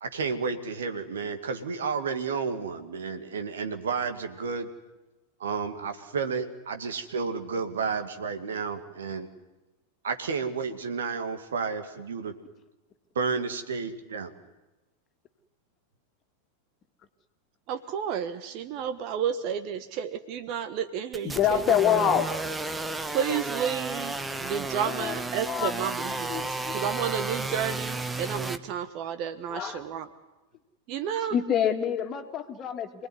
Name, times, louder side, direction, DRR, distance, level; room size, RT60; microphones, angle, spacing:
voice 1, 0.0-4.7 5.4-9.3 10.0-12.3 13.2-14.3, right 5 dB, 65° right, 7 dB, 2.4 m, -31 dB
voice 2, 17.7-21.7 23.1-24.1 24.4-26.5 26.7-30.1 30.9-31.3, right 8 dB, 40° right, 11 dB, 1.3 m, -31 dB
sound 1, 21.1-28.6, right 2 dB, 10° right, 1.3 m, -33 dB
voice 3, 21.2-22.3 24.8-25.7 26.3-26.8 29.5-29.9 31.3-33.1, left 9 dB, 30° left, 7 dB, 2.3 m, -26 dB
28.0 x 19.5 x 9.7 m, 1.1 s
figure-of-eight pair, 90°, 0 cm